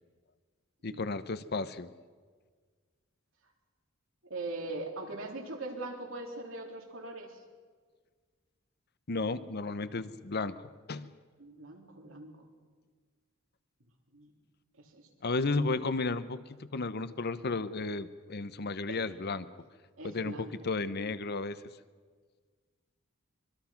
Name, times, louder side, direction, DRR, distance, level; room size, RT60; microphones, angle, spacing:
voice 1, 0.8-1.9 9.1-10.6 10.9-11.1 15.2-19.5 20.0-20.3 20.6-21.6, left 3 dB, 55° left, 13 dB, 0.9 m, -33 dB
voice 2, 4.3-7.4 11.4-12.3 14.1-14.3 14.8-15.1 18.9-19.0 20.0-20.5, right 2 dB, 70° right, 0 dB, 3.8 m, -41 dB
24.5 x 23.0 x 5.9 m, 1.6 s
head